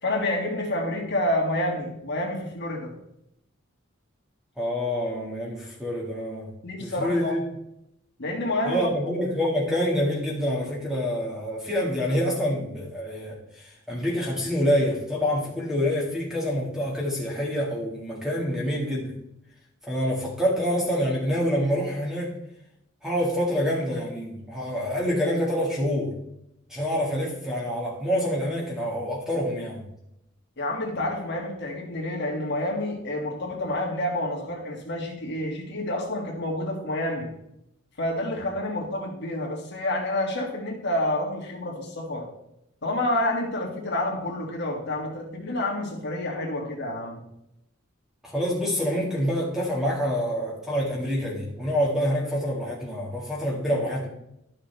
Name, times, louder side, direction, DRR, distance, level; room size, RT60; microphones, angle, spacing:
voice 1, 0.0-3.0 6.6-7.4 8.2-8.9 30.6-37.3 38.0-42.3 42.8-47.3, left 1 dB, 60° left, 0 dB, 2.1 m, -28 dB
voice 2, 4.6-6.5 6.8-7.4 8.7-19.1 19.8-22.3 23.0-26.1 26.7-29.8 48.2-54.1, equal, 5° right, -4 dB, 2.0 m, -26 dB
12.0 x 6.4 x 3.4 m, 0.80 s
head